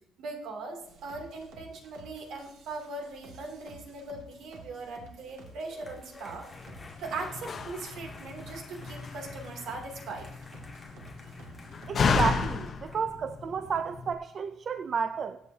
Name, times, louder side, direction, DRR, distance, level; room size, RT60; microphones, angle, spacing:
voice 1, 0.2-6.5 7.0-10.3, right 3 dB, 65° right, 2 dB, 2.7 m, -40 dB
sound 1, 0.8-12.7, right 3 dB, 90° right, 2.1 m, -52 dB
sound 2, 5.2-13.0, left 2 dB, 10° left, 1.8 m, -52 dB
Slam, 6.5-14.1, left 5 dB, 35° left, 0.9 m, -33 dB
voice 2, 11.9-15.4, right 6 dB, 35° right, 9 dB, 0.4 m, -31 dB
22.0 x 8.2 x 2.8 m, 0.79 s
cardioid pair, 175°, 0 cm